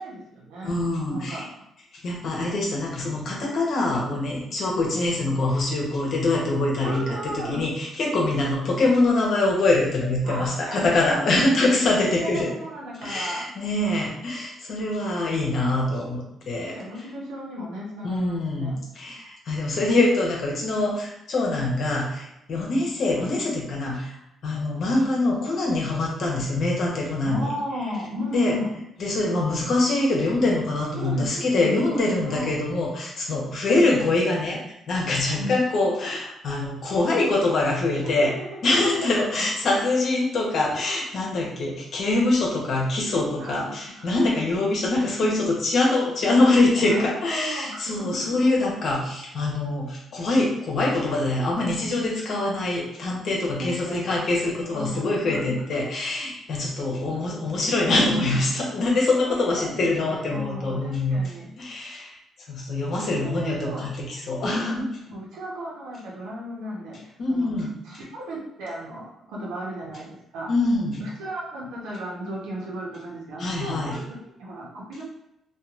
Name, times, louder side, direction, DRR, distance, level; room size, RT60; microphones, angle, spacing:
voice 1, 0.0-0.7 1.1-1.5 6.8-7.6 10.2-13.5 16.5-18.8 27.2-28.7 31.0-32.5 35.4-35.6 38.0-38.4 43.4-43.6 44.0-44.1 46.2-46.5 46.8-48.3 53.6-54.1 54.7-55.6 59.3-61.5 63.2-64.0 65.1-67.5 67.8-70.5 71.0-75.0, equal, 90° right, -4 dB, 0.9 m, -35 dB
voice 2, 0.6-1.4 2.0-12.5 13.0-16.8 18.0-27.5 28.3-28.6 29.0-34.6 34.9-38.3 38.6-61.2 61.6-62.1 62.5-65.0 67.2-67.8 70.5-71.0 73.4-74.0, left 2 dB, 60° left, -2 dB, 0.9 m, -24 dB
2.9 x 2.4 x 2.4 m, 0.84 s
cardioid pair, 90°, 0 cm